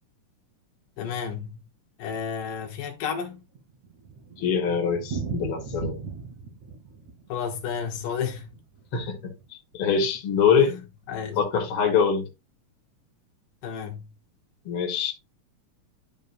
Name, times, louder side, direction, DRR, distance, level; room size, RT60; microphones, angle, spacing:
voice 1, 1.0-1.6 2.0-3.4 7.3-8.5 10.6-11.4 13.6-14.1, left 7 dB, 80° left, 2.8 m, -32 dB
Thunder, 3.2-9.5 9.7-9.8 10.1-10.2 10.5-10.6 11.1-11.5, right 5 dB, 60° right, 3.7 m, -38 dB
voice 2, 4.4-5.9 8.9-9.3 9.7-10.8 11.4-12.3 14.7-15.1, left 6 dB, 50° left, 2.5 m, -23 dB
11.5 x 5.3 x 2.6 m
omnidirectional pair, 3.8 m